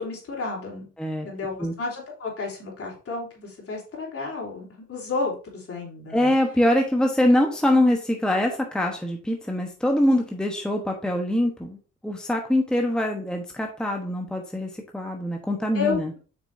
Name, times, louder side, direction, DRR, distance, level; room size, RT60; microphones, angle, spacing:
voice 1, 0.0-0.9 1.3-6.3 15.7-16.2, left 3 dB, 50° left, -1 dB, 3.4 m, -31 dB
voice 2, 6.1-11.8 12.0-16.1, left 1 dB, 5° left, 1 dB, 1.1 m, -23 dB
7.5 x 6.1 x 2.7 m, 0.36 s
cardioid pair, 90°, 30 cm